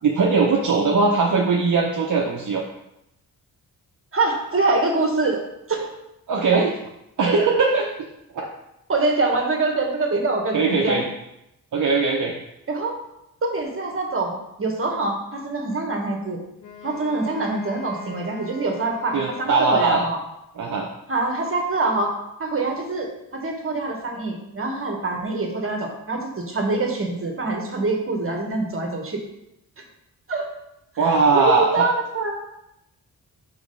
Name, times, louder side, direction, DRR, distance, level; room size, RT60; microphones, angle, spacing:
voice 1, 0.0-2.6 6.3-6.7 7.2-7.9 8.3-8.5 10.5-11.0 11.7-12.3 19.1-20.0 20.6-20.9 31.0-31.9, right 4 dB, 55° right, -1 dB, 0.8 m, -20 dB
voice 2, 4.1-5.4 5.7-5.9 8.9-11.0 12.7-13.0 13.4-16.4 16.8-20.2 21.1-29.2 30.3-30.5 31.0-32.4, right 3 dB, 35° right, 2 dB, 1.4 m, -25 dB
Wind instrument woodwind instrument, 16.6-20.3, left 5 dB, 55° left, 1.8 m, -42 dB
5.1 x 4.3 x 5.4 m, 0.86 s
wide cardioid pair, 100°, 37 cm